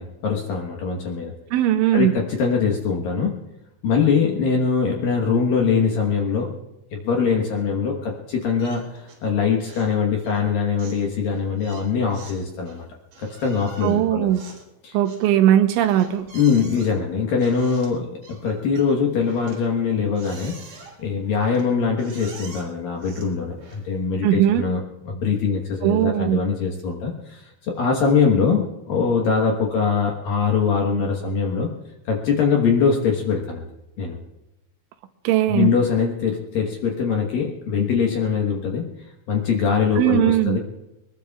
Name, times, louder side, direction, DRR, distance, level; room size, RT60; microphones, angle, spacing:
voice 1, 0.0-1.3 1.9-3.3 3.8-6.5 6.9-12.8 13.2-14.3 14.8-15.0 16.3-24.8 25.1-31.7 32.1-33.7 34.0-34.2 35.5-38.8 39.3-40.6, left 5 dB, 65° left, 0 dB, 2.4 m, -22 dB
voice 2, 1.5-2.1 13.8-14.4 14.9-16.3 24.2-24.6 25.8-26.4 35.2-35.7 40.0-40.6, right 12 dB, 80° right, 8 dB, 3.2 m, -19 dB
sound 1, 8.6-9.3 9.6-10.0 10.2-24.1, right 4 dB, 60° right, 5.8 m, -46 dB
23.5 x 20.5 x 2.4 m, 0.96 s
omnidirectional pair, 5.6 m